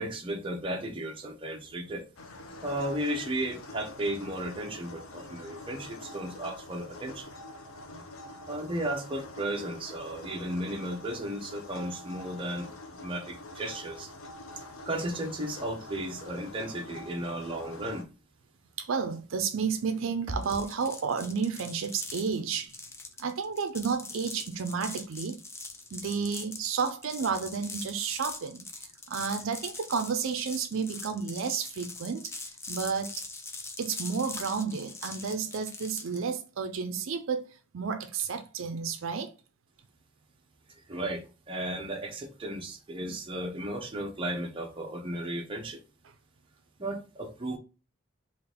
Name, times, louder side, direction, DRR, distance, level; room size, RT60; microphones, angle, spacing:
voice 1, 0.0-2.0 2.6-7.3 8.5-14.1 14.9-18.1 40.9-45.8 46.8-47.6, right 1 dB, 25° right, 0.7 m, -34 dB
sound 1, 2.2-18.0, left 2 dB, 75° left, 0.6 m, -46 dB
voice 2, 18.8-22.7 23.2-25.4 25.9-32.3 32.7-33.2 33.8-39.3, right 5 dB, 70° right, 0.5 m, -31 dB
sound 2, 20.4-36.2, left 3 dB, 15° left, 0.4 m, -42 dB
3.8 x 2.5 x 3.4 m
head